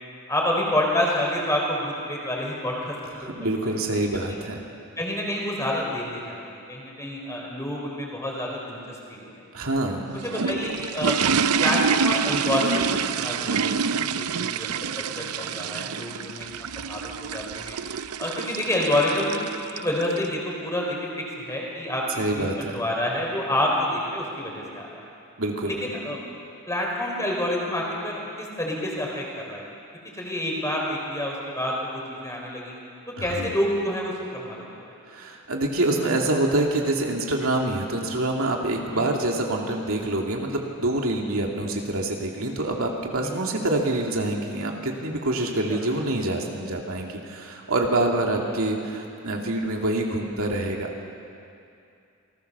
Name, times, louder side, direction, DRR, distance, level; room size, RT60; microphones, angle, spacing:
voice 1, 0.3-2.9 3.2-3.3 3.7-3.8 5.0-9.3 10.2-16.5 16.7-17.8 18.2-19.4 19.7-21.0 21.4-22.0 22.3-25.1 25.7-26.2 26.7-29.6 30.2-32.7 33.2-34.9 38.9-39.1 43.2-43.4 45.7-45.8 48.4-48.5, left 1 dB, 15° left, -2 dB, 4.7 m, -28 dB
voice 2, 3.2-4.6 9.5-10.1 22.2-22.7 25.4-25.9 33.2-33.5 35.1-51.0, right 2 dB, 70° right, 0 dB, 2.6 m, -26 dB
sound 1, 9.9-20.3, right 6 dB, 85° right, 0.6 m, -27 dB
28.5 x 19.5 x 6.9 m, 2.6 s
head